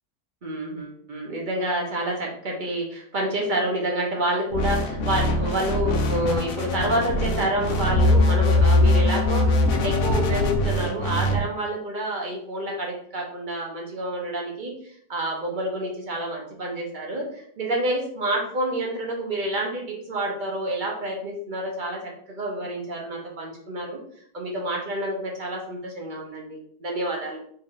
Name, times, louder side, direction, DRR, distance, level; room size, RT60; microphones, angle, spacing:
voice 1, 0.4-14.7 15.1-22.0 22.3-24.0 24.3-27.4, right 1 dB, 40° right, -1 dB, 0.8 m, -28 dB
sound 1, 4.5-11.4, left 2 dB, 75° left, 1.0 m, -22 dB
3.2 x 2.5 x 3.7 m, 0.63 s
omnidirectional pair, 1.6 m